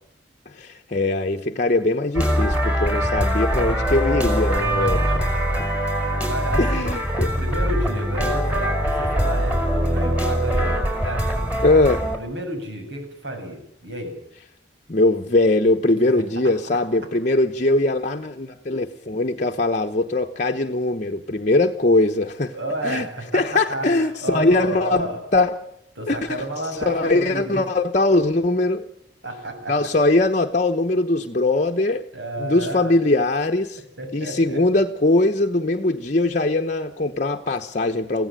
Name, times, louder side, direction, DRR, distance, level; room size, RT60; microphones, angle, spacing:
voice 1, 0.5-5.0 6.6-7.3 11.6-12.0 14.9-22.5 22.8-23.1 23.3-25.6 26.1-26.3 26.8-28.9 29.7-32.0 32.4-33.8 34.1-38.3, left 2 dB, 40° left, 4 dB, 1.0 m, -21 dB
sound 1, 2.1-12.2, equal, 5° right, 4.8 m, -22 dB
voice 2, 4.5-7.0 7.3-11.3 12.2-14.2 16.4-16.5 22.5-23.9 24.2-25.2 26.0-27.6 29.2-29.9 32.1-33.0 34.0-34.8, right 1 dB, 75° right, 4 dB, 7.7 m, -31 dB
23.5 x 16.0 x 8.9 m, 0.75 s
head